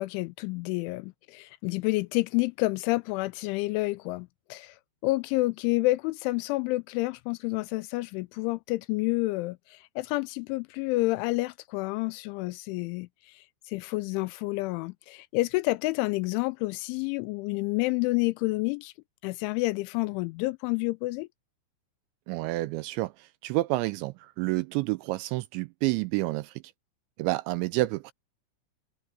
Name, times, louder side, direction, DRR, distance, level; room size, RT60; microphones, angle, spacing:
voice 1, 0.0-4.8 5.0-18.9 19.2-21.3, left 21 dB, 85° left, 2.8 m, -29 dB
voice 2, 22.3-26.6 27.2-28.1, right 20 dB, 85° right, 2.6 m, -29 dB
omnidirectional pair, 5.7 m